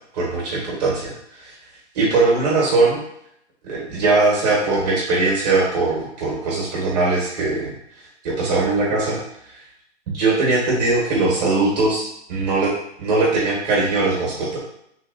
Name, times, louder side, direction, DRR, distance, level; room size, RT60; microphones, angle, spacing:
voice 1, 0.1-1.1 1.4-1.5 1.9-3.0 3.6-7.7 8.2-9.2 10.1-12.7 13.0-14.6, right 3 dB, 35° right, -4 dB, 1.3 m, -20 dB
3.3 x 2.8 x 2.5 m, 0.74 s
hypercardioid pair, 155°, 35 cm